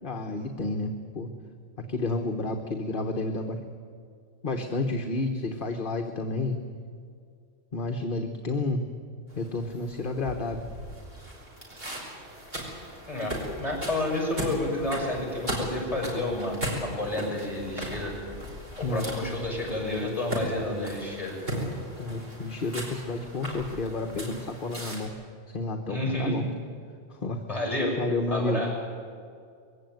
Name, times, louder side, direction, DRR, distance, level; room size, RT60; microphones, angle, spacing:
voice 1, 0.0-1.3 1.8-3.6 4.4-6.6 7.7-8.8 9.3-10.6 18.8-19.0 21.5-25.1 25.5-26.4 27.1-27.4 28.0-28.7, left 2 dB, 50° left, 4 dB, 1.5 m, -30 dB
sound 1, 9.3-25.1, right 1 dB, 60° right, 5.0 m, -37 dB
voice 2, 13.1-18.1 18.9-21.3 25.9-26.4 27.5-28.0 28.3-28.7, left 1 dB, 30° left, 0 dB, 7.1 m, -30 dB
22.0 x 16.5 x 9.3 m, 2.3 s
omnidirectional pair, 1.1 m